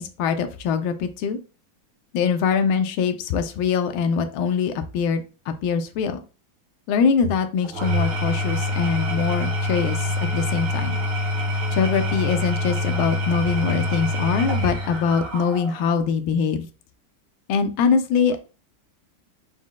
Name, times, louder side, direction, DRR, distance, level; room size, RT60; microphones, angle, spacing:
voice 1, 0.0-1.4 2.1-6.2 6.9-10.0 10.3-10.9 11.7-16.7 17.5-18.4, left 6 dB, 85° left, 8 dB, 1.4 m, -23 dB
Engine / Tools, 7.6-16.0, left 1 dB, 55° right, 1.0 m, -25 dB
4.8 x 2.1 x 3.6 m, 0.33 s
omnidirectional pair, 2.2 m